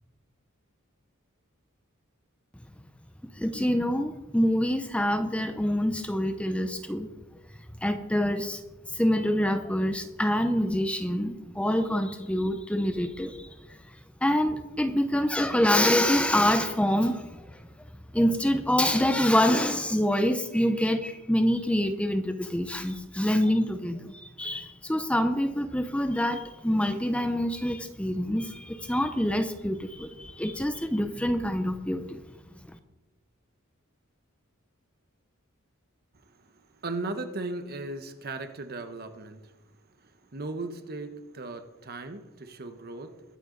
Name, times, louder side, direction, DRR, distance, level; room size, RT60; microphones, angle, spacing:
voice 1, 3.3-7.1 7.8-8.6 8.9-13.9 14.2-17.7 18.1-32.2, equal, 5° left, 0.7 m, -26 dB
voice 2, 36.1-39.6 40.0-43.2, right 2 dB, 50° right, 1.2 m, -37 dB
22.0 x 7.9 x 4.0 m
head